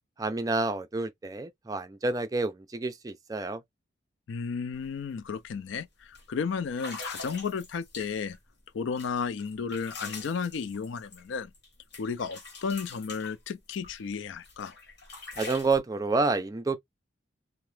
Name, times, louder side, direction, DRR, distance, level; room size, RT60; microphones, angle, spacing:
voice 1, 0.2-3.6 15.4-16.8, right 3 dB, 20° right, 0.3 m, -29 dB
voice 2, 4.3-8.4 8.7-11.5 12.0-14.7, left 5 dB, 75° left, 0.4 m, -33 dB
sound 1, 4.7-4.9 5.2-5.5 6.1-6.2 6.7-8.4 9.0-11.7 11.9-14.0 14.4-15.8, left 3 dB, 60° left, 1.4 m, -43 dB
2.9 x 2.0 x 3.2 m
head